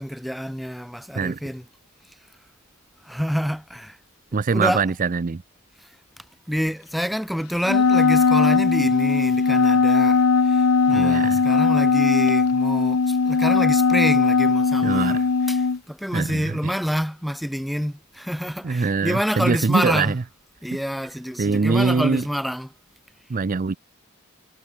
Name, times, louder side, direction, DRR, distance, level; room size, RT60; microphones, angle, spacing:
voice 1, 0.0-1.6 2.1-2.2 3.0-4.0 4.5-4.8 5.8-20.1 20.6-22.7, equal, ahead, 2.1 m, -28 dB
voice 2, 4.3-5.4 10.9-11.5 14.8-15.3 16.1-16.7 18.6-20.2 21.4-22.2 23.3-23.7, right 4 dB, 40° right, 0.5 m, -23 dB
Wind instrument woodwind instrument, 7.6-15.8, left 4 dB, 85° left, 0.7 m, -19 dB
head